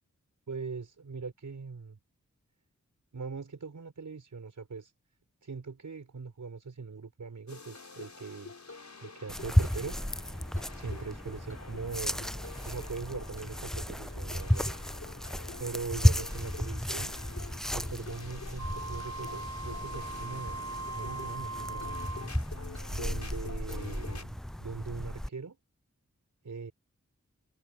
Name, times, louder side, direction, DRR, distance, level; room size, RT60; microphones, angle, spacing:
voice 1, 0.5-2.0 3.1-4.9 5.4-8.5 9.0-9.9 10.7-12.3 12.6-14.7 15.6-17.2 17.7-20.6 20.9-22.0 22.9-25.6 26.4-26.7, right 4 dB, 90° right, 5.0 m, -41 dB
sound 1, 7.5-24.2, left 4 dB, 65° left, 5.4 m, -47 dB
sound 2, 9.3-25.3, equal, ahead, 0.4 m, -33 dB
Wind instrument woodwind instrument, 18.6-22.3, right 3 dB, 70° right, 3.6 m, -40 dB
wide cardioid pair, 70°, 29 cm